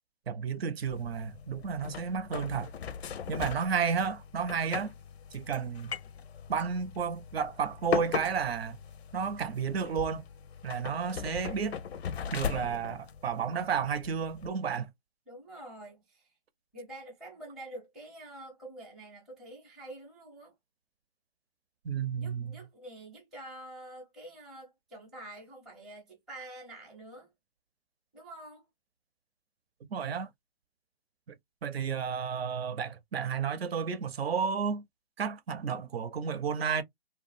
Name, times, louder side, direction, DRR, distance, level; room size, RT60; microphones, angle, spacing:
voice 1, 0.3-2.7 3.3-4.9 5.3-5.9 6.5-8.8 9.1-10.3 10.6-11.8 12.3-14.9 21.8-22.6 29.9-30.3 31.6-34.8 35.2-36.8, right 6 dB, 70° right, 0.7 m, -32 dB
sound 1, 0.9-14.5, left 7 dB, 85° left, 0.6 m, -39 dB
voice 2, 15.3-16.3 16.7-20.5 22.2-27.3 28.1-28.6, right 1 dB, ahead, 0.5 m, -47 dB
2.7 x 2.4 x 2.5 m
hypercardioid pair, 155°, 31 cm